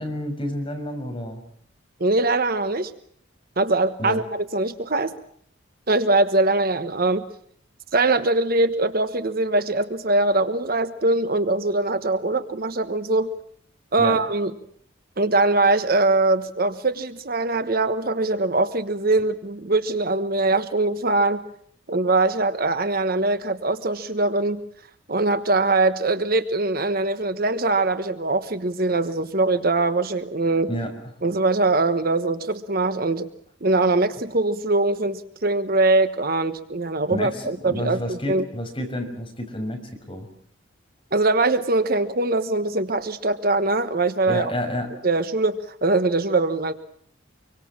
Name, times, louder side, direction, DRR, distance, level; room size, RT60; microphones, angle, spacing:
voice 1, 0.0-1.4 4.0-4.2 14.0-14.2 30.7-30.9 37.1-39.8 40.1-40.3 44.3-44.9, left 1 dB, 25° left, 4 dB, 6.1 m, -29 dB
voice 2, 2.0-2.9 3.6-5.1 5.9-7.2 7.9-13.3 13.9-14.5 15.2-21.4 21.9-24.6 25.1-30.7 31.2-33.3 33.6-38.4 41.1-44.5 45.0-46.7, right 2 dB, 50° right, 11 dB, 1.2 m, -22 dB
26.0 x 24.0 x 7.5 m, 0.63 s
head